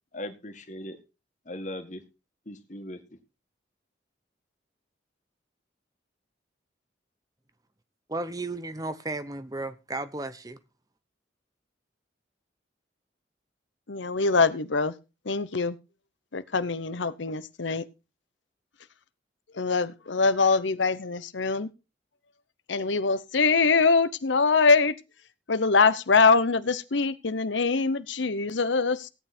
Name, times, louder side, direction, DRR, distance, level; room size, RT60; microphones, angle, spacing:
voice 1, 0.1-1.0 1.5-2.0 2.5-3.2, left 1 dB, 40° left, 1.9 m, -39 dB
voice 2, 8.1-10.6, right 2 dB, 20° right, 0.7 m, -34 dB
voice 3, 13.9-14.9 15.3-15.7 16.3-17.8 19.6-21.7 22.7-24.9 25.5-29.1, left 4 dB, 80° left, 0.9 m, -23 dB
16.5 x 9.2 x 4.4 m
head